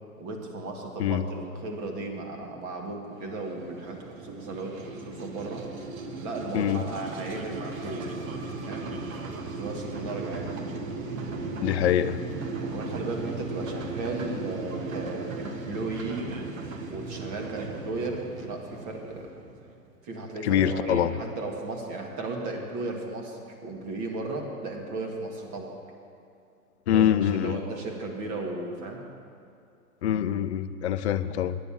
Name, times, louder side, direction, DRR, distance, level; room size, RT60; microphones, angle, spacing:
voice 1, 0.2-4.8 5.1-5.6 6.2-9.1 9.5-10.5 12.6-16.3 16.9-19.3 20.0-25.8 26.9-29.0, right 2 dB, 35° right, 1 dB, 1.8 m, -35 dB
sound 1, 3.2-19.9, right 3 dB, 60° right, 1.3 m, -37 dB
voice 2, 6.5-6.8 11.6-12.2 20.4-21.1 26.9-27.6 30.0-31.6, left 10 dB, 50° left, 11 dB, 0.5 m, -24 dB
9.5 x 6.9 x 8.7 m, 2.5 s
hypercardioid pair, 125°, 46 cm